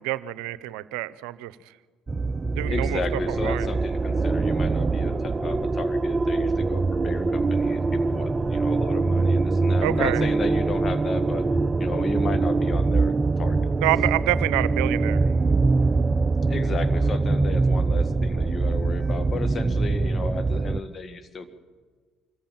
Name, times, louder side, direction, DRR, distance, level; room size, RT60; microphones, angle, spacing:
voice 1, 0.0-1.5 2.5-3.0 3.4-3.7 9.8-10.2 13.8-15.3, right 17 dB, 80° right, 17 dB, 0.7 m, -27 dB
sound 1, 2.1-20.8, right 3 dB, 30° right, 0.6 m, -23 dB
voice 2, 2.7-11.4 11.8-13.9 16.5-21.5, left 3 dB, 40° left, 9 dB, 1.8 m, -34 dB
25.0 x 14.5 x 8.9 m, 1.5 s
hypercardioid pair, 65°, 0 cm